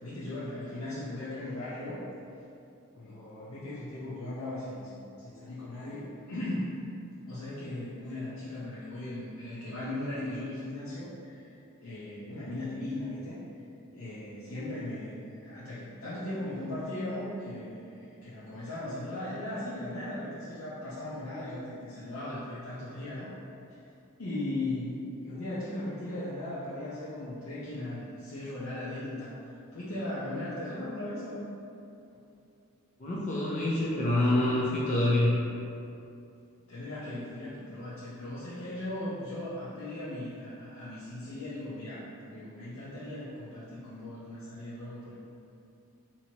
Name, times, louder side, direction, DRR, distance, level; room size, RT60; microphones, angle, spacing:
voice 1, 0.0-2.0 2.9-6.7 7.2-13.4 13.9-23.3 23.7-23.8 24.2-29.4 29.7-31.5 36.7-45.1, left 1 dB, 85° left, -10 dB, 0.7 m, -38 dB
voice 2, 33.0-35.4, left 1 dB, 35° left, -7 dB, 0.5 m, -26 dB
4.4 x 2.8 x 2.8 m, 2.6 s
head